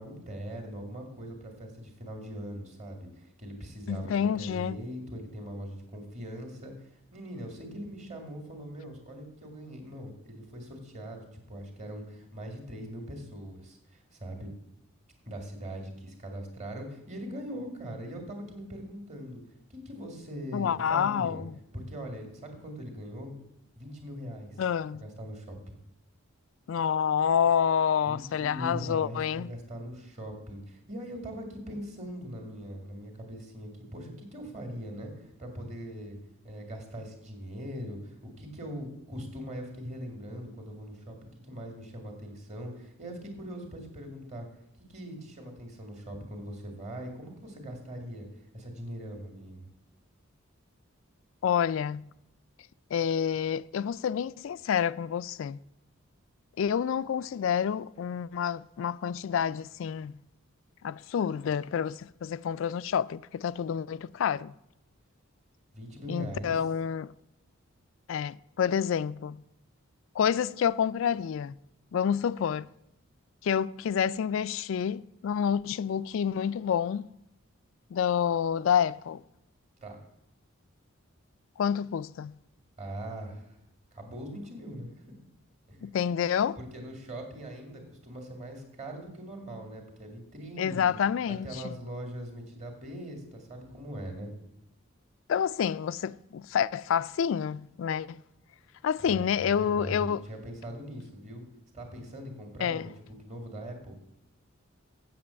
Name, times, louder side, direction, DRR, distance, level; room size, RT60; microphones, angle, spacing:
voice 1, 0.0-14.5 15.3-19.4 19.7-21.4 21.7-23.3 23.8-24.6 24.9-25.8 28.1-36.2 36.4-44.5 44.9-48.3 48.5-49.7 65.7-66.7 79.8-80.0 82.8-83.5 83.9-85.2 85.7-85.9 86.6-91.0 91.3-94.3 99.1-101.5 101.7-104.0, equal, 35° right, 2.0 m, -41 dB
voice 2, 3.9-4.8 20.5-21.5 24.6-25.1 26.7-29.5 51.4-52.1 52.9-55.6 56.6-60.1 60.8-64.5 66.1-67.1 68.1-69.4 70.2-71.6 71.9-72.7 73.4-77.1 77.9-79.2 81.6-82.4 85.8-86.6 90.6-91.7 95.3-98.2 98.8-100.2 102.6-102.9, left 8 dB, 65° left, 0.3 m, -28 dB
7.6 x 7.6 x 7.0 m
head